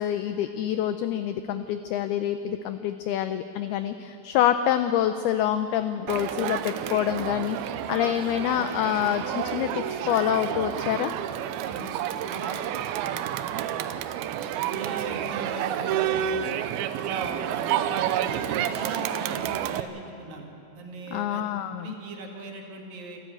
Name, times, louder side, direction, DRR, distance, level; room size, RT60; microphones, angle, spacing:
voice 1, 0.0-11.1 21.1-21.9, left 11 dB, 85° left, 10 dB, 2.2 m, -26 dB
Crowd, 6.1-19.8, right 10 dB, 90° right, 2.1 m, -30 dB
voice 2, 14.5-16.6 17.0-20.5 20.7-21.5 21.8-23.2, right 3 dB, 55° right, 1 dB, 3.3 m, -38 dB
27.0 x 12.5 x 9.1 m, 3.0 s
omnidirectional pair, 5.3 m